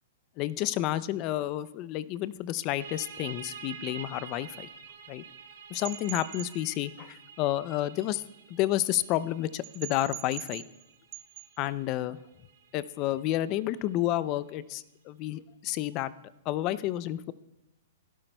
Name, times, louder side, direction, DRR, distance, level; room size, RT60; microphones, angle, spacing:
voice 1, 0.4-4.7 5.1-5.2 5.7-8.2 8.5-10.6 11.6-12.2 12.7-16.1 16.5-17.3, left 14 dB, 35° left, 17 dB, 0.4 m, -30 dB
sound 1, 2.8-14.1, right 7 dB, 75° right, 3.5 m, -48 dB
sound 2, 5.7-6.5 9.6-10.8 11.1-11.5, right 16 dB, 40° right, 0.8 m, -42 dB
16.5 x 12.0 x 2.2 m, 0.97 s
hypercardioid pair, 140°, 0 cm